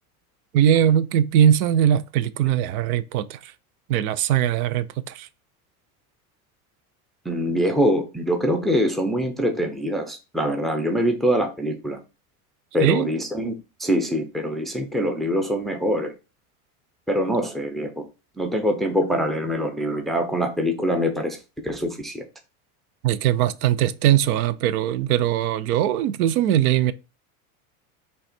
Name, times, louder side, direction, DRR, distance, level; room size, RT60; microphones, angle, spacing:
voice 1, 0.5-3.5 3.9-5.3 12.8-13.1 23.0-26.9, right 10 dB, 75° right, 0.6 m, -20 dB
voice 2, 7.3-12.0 12.7-13.5 13.8-16.1 17.1-18.0 18.4-21.4 21.6-22.2, equal, ahead, 0.4 m, -24 dB
5.3 x 2.3 x 4.3 m
supercardioid pair, 120°, 44 cm